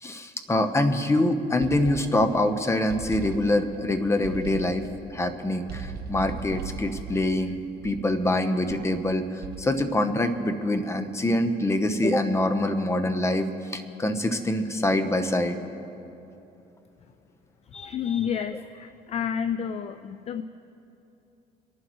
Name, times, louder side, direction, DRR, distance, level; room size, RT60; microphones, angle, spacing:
voice 1, 0.0-4.8 5.1-15.6, left 1 dB, 15° left, 8 dB, 0.9 m, -25 dB
sound 1, 1.6-2.5 2.9-3.8 4.2-5.0 5.7-8.2 8.7-9.0 9.4-9.9, right 5 dB, 65° right, 1.1 m, -38 dB
voice 2, 17.7-20.4, left 8 dB, 40° left, 11 dB, 0.4 m, -30 dB
26.0 x 11.5 x 3.1 m, 3.0 s
cardioid pair, 110°, 17 cm